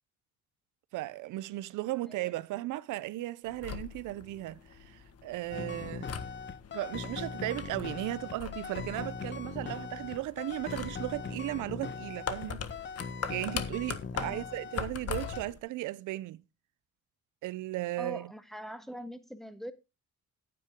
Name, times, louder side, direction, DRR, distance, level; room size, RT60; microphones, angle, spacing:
voice 1, 0.9-6.1 6.7-12.6 13.3-16.4 17.4-18.3, right 16 dB, 85° right, 0.6 m, -36 dB
sound 1, 3.5-15.6, left 7 dB, 55° left, 1.6 m, -42 dB
sound 2, 5.5-14.9 15.1-15.4, left 5 dB, 40° left, 1.0 m, -40 dB
voice 2, 14.1-14.4 18.0-19.7, equal, ahead, 1.5 m, -43 dB
11.5 x 9.4 x 3.6 m
cardioid pair, 90°, 30 cm